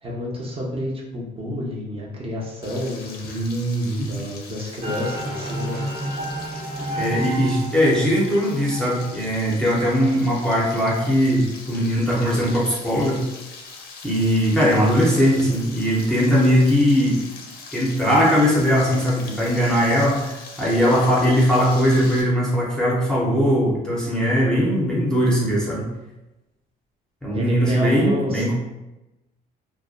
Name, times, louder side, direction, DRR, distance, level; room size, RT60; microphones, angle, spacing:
voice 1, 0.0-3.4 4.1-5.9 27.3-28.5, left 1 dB, 35° right, -3 dB, 0.7 m, -30 dB
Frying (food), 2.6-22.2, left 4 dB, 70° left, 0.5 m, -41 dB
voice 2, 3.2-4.1 6.9-13.2 14.0-17.2 17.7-25.8 27.2-28.5, equal, 5° left, -6 dB, 0.6 m, -20 dB
sound 1, 4.8-9.4, right 1 dB, 90° right, 1.1 m, -31 dB
2.6 x 2.1 x 2.3 m, 0.98 s
cardioid pair, 110°, 17 cm